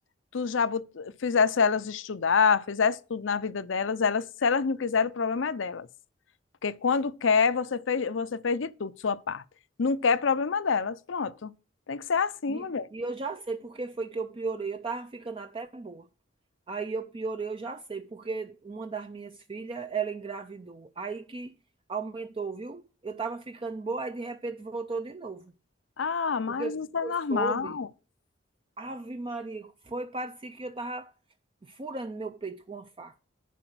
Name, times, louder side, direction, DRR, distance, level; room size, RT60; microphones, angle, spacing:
voice 1, 0.3-5.9 6.6-9.4 9.8-11.5 11.9-12.9 26.0-27.9, left 5 dB, 70° left, 0.6 m, -27 dB
voice 2, 12.9-16.1 16.7-21.5 21.9-25.5 26.5-26.7 27.0-27.8 28.8-31.1 31.6-33.1, right 4 dB, 25° right, 0.4 m, -35 dB
10.0 x 4.9 x 6.1 m
head